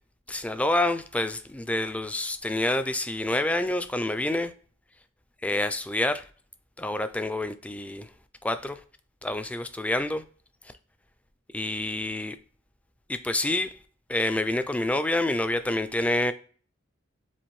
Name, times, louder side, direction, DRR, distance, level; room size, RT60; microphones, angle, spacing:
voice 1, 0.3-4.5 5.4-6.3 6.8-8.1 8.4-8.8 9.2-10.2 11.5-12.4 13.1-13.7 14.1-16.3, left 1 dB, 5° left, 0.3 m, -27 dB
7.1 x 2.4 x 3.1 m
head